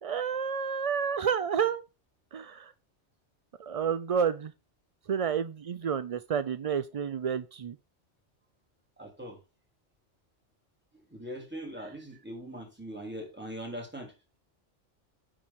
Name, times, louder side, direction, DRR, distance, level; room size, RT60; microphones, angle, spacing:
voice 1, 0.0-1.8 2.3-2.7 3.6-4.5 5.1-7.8, right 7 dB, 60° right, 0.3 m, -30 dB
voice 2, 9.0-9.4 11.1-14.1, equal, 10° right, 3.0 m, -41 dB
10.0 x 4.6 x 5.7 m
omnidirectional pair, 1.2 m